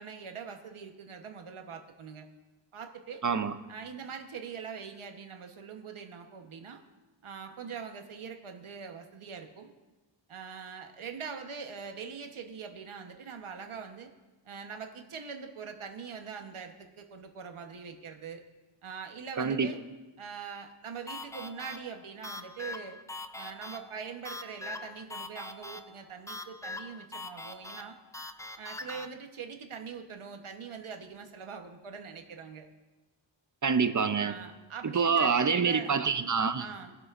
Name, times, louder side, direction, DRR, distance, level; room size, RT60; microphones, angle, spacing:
voice 1, 0.0-2.3 2.7-3.2 3.7-6.8 7.2-9.7 10.3-14.1 14.4-18.4 18.8-19.8 20.2-23.0 23.3-28.0 28.6-32.7 34.2-36.0 36.6-37.0, right 6 dB, 90° right, 4 dB, 1.1 m, -43 dB
voice 2, 3.2-3.5 19.4-19.7 33.6-34.4 34.9-36.7, right 5 dB, 40° right, 11 dB, 0.6 m, -26 dB
sound 1, 21.1-29.1, left 2 dB, 5° left, 0.3 m, -43 dB
21.0 x 7.9 x 2.5 m, 1.2 s
wide cardioid pair, 100°, 48 cm